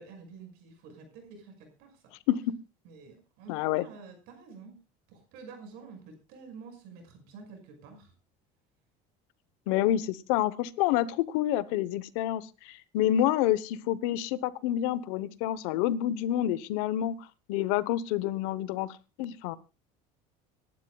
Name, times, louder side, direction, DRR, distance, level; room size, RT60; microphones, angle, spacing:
voice 1, 0.0-2.1 2.8-4.8 5.1-8.1, right 4 dB, 75° right, 5 dB, 5.6 m, -49 dB
voice 2, 3.5-3.8 9.7-17.2 17.5-19.6, left 12 dB, 80° left, 17 dB, 1.0 m, -28 dB
25.5 x 11.5 x 2.3 m, 0.29 s
supercardioid pair, 105°, 17 cm